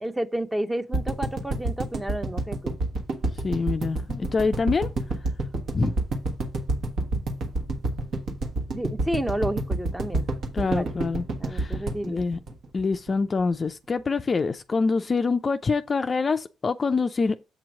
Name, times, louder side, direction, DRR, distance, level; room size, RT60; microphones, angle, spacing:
voice 1, 0.0-2.8 8.7-10.2 10.6-10.9 11.4-12.2, right 1 dB, 10° right, 0.7 m, -31 dB
sound 1, 0.9-13.1 13.4-13.5 13.7-13.8, right 2 dB, 65° right, 1.3 m, -28 dB
voice 2, 3.4-4.9 5.7-5.9 10.5-12.4 12.7-17.4, left 4 dB, 35° left, 0.4 m, -25 dB
7.8 x 2.9 x 6.2 m
cardioid pair, 90°, 0 cm